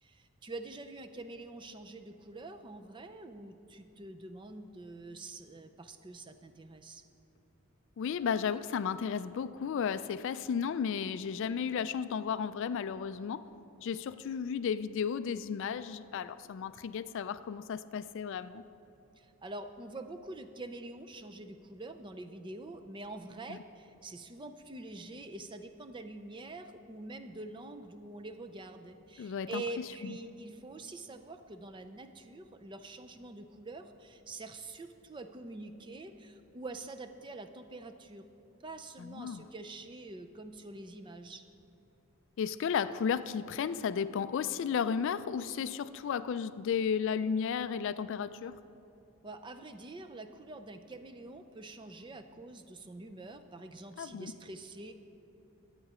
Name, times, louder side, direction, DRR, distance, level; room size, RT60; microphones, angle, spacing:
voice 1, 0.0-7.0 19.2-38.3 38.6-41.4 49.2-54.9, right 2 dB, 20° right, 8 dB, 0.4 m, -45 dB
voice 2, 8.0-13.4 13.8-18.6 23.5-23.6 29.2-29.6 30.0-30.1 39.0-39.4 42.4-48.6 54.0-54.3, left 7 dB, 55° left, 14 dB, 0.3 m, -33 dB
12.0 x 8.3 x 4.9 m, 3.0 s
head